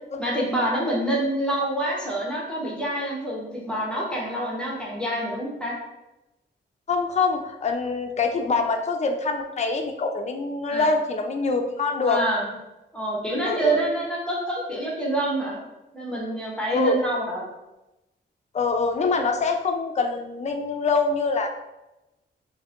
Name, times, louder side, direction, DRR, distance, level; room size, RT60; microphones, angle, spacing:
voice 1, 0.2-5.8 10.7-10.9 12.0-12.5 12.9-15.6 15.9-17.4, right 1 dB, 5° left, -4 dB, 0.9 m, -27 dB
voice 2, 6.9-12.2 13.4-13.8 16.7-17.0 18.5-21.5, left 4 dB, 40° left, 4 dB, 0.4 m, -24 dB
5.4 x 2.6 x 2.5 m, 0.98 s
wide cardioid pair, 160°, 19 cm